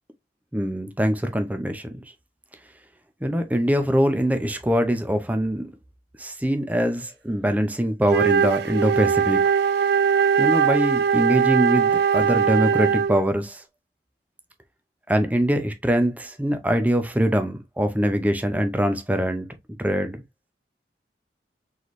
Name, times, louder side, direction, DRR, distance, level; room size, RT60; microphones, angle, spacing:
voice 1, 0.5-1.9 3.2-5.7 6.2-9.4 10.4-13.6 15.1-19.5 19.8-20.2, equal, 10° right, 0.6 m, -23 dB
Wind instrument woodwind instrument, 8.0-13.3, right 7 dB, 60° right, 0.3 m, -20 dB
4.0 x 3.2 x 3.1 m
head